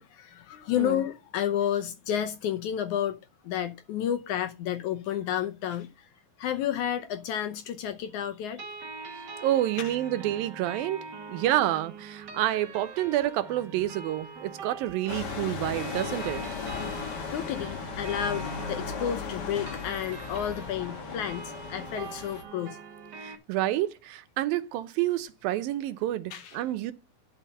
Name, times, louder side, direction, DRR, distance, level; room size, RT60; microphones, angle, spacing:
voice 1, 0.0-3.2 3.4-6.1 6.4-8.7 9.0-9.1 9.8-9.9 16.7-22.8 26.3-26.6, left 10 dB, 70° left, 1.9 m, -31 dB
sound 1, 8.6-23.4, right 4 dB, 55° right, 1.1 m, -43 dB
voice 2, 9.4-11.0 11.3-16.4 23.2-26.9, right 13 dB, 85° right, 2.7 m, -28 dB
sound 2, 15.1-22.4, left 6 dB, 90° left, 0.9 m, -36 dB
11.5 x 5.7 x 5.5 m
omnidirectional pair, 4.1 m